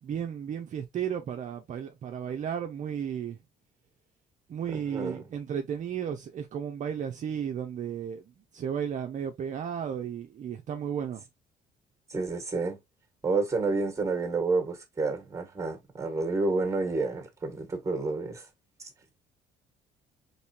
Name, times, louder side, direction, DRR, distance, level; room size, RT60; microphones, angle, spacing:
voice 1, 0.0-3.4 4.5-11.2, right 8 dB, 45° right, 0.6 m, -34 dB
voice 2, 4.7-5.2 12.1-12.8 13.2-18.4, right 3 dB, 20° right, 1.6 m, -29 dB
4.1 x 3.4 x 2.8 m
cardioid pair, 110°, 17 cm